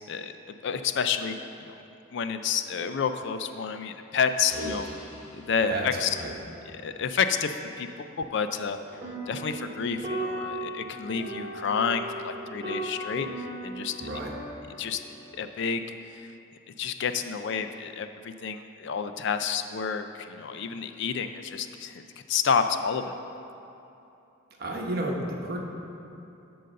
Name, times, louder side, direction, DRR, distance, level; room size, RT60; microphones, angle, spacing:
voice 1, 0.6-1.7 2.1-4.9 5.3-6.2 6.7-9.0 9.3-13.3 13.6-13.9 14.8-15.0 15.3-15.8 16.8-23.1, left 6 dB, 60° left, 9 dB, 0.4 m, -29 dB
sound 1, 4.5-6.8, left 2 dB, 80° left, 1.5 m, -50 dB
sound 2, 8.8-15.3, right 1 dB, 25° right, 2.0 m, -37 dB
voice 2, 14.0-14.3 24.6-25.6, right 1 dB, 50° right, 0 dB, 1.1 m, -32 dB
11.5 x 3.9 x 6.5 m, 2.8 s
head